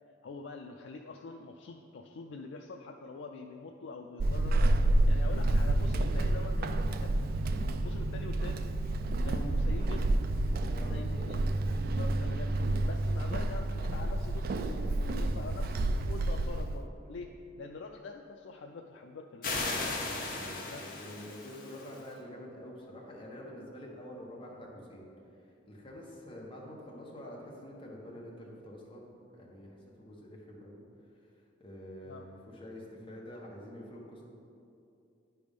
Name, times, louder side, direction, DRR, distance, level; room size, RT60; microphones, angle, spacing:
voice 1, 0.2-4.7 5.0-8.6 9.2-10.1 10.9-12.6 12.8-19.8 20.7-20.9 32.1-32.3, left 3 dB, 70° left, 2 dB, 0.4 m, -45 dB
Walk footsteps / Squeak, 4.2-16.9, right 1 dB, 55° right, 0.3 m, -29 dB
voice 2, 10.6-11.2 17.2-17.3 20.3-25.1 25.3-30.8 31.2-34.2, left 1 dB, 30° left, -2 dB, 1.1 m, -47 dB
sound 1, 19.4-22.0, left 3 dB, 50° left, 1.1 m, -36 dB
9.6 x 3.5 x 5.2 m, 2.6 s
head